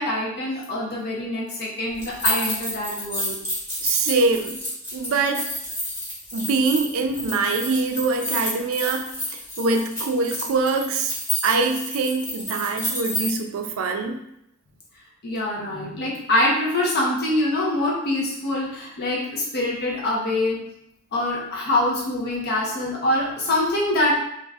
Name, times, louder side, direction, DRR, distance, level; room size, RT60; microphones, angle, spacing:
voice 1, 0.0-3.4 15.2-20.6 21.1-24.2, left 1 dB, 50° left, -4 dB, 0.6 m, -24 dB
sound 1, 2.0-13.3, left 1 dB, 10° left, 1.0 m, -29 dB
voice 2, 3.8-4.6 4.9-5.5 6.3-9.1 9.6-11.1 11.4-14.2, right 3 dB, 70° right, 5 dB, 0.4 m, -23 dB
2.4 x 2.2 x 3.4 m, 0.80 s
head